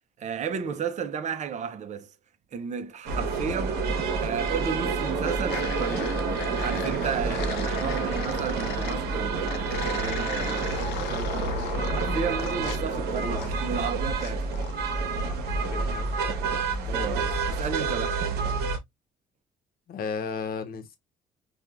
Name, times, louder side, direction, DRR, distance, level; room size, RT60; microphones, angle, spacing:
voice 1, 0.2-2.1 2.5-3.9 4.2-11.6 11.9-14.5 16.8-18.2, right 6 dB, 45° right, 0.6 m, -33 dB
sound 1, 3.1-18.8, right 4 dB, 70° right, 0.9 m, -28 dB
sound 2, 4.2-4.8 5.0-9.0 9.5-13.9 14.2-14.7, left 10 dB, 75° left, 0.5 m, -38 dB
voice 2, 11.5-12.4 15.2-16.1 19.9-21.0, left 6 dB, 60° left, 0.9 m, -36 dB
4.3 x 2.3 x 2.3 m
supercardioid pair, 65°, 17 cm